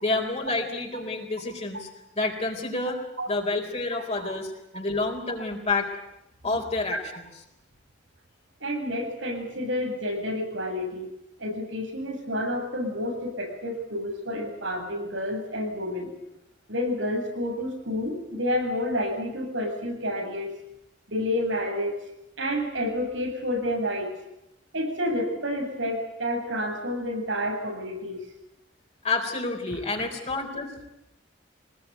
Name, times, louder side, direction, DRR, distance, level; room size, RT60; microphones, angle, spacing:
voice 1, 0.0-1.9 2.2-3.0 3.3-5.9 6.4-7.3 29.0-30.9, left 3 dB, 35° left, 1 dB, 3.9 m, -29 dB
voice 2, 8.6-11.1 11.4-16.1 16.7-20.5 21.1-21.9 22.4-24.1 24.7-28.2 29.7-29.8, left 1 dB, 90° right, 3 dB, 7.8 m, -29 dB
24.5 x 20.0 x 9.4 m, 0.85 s
head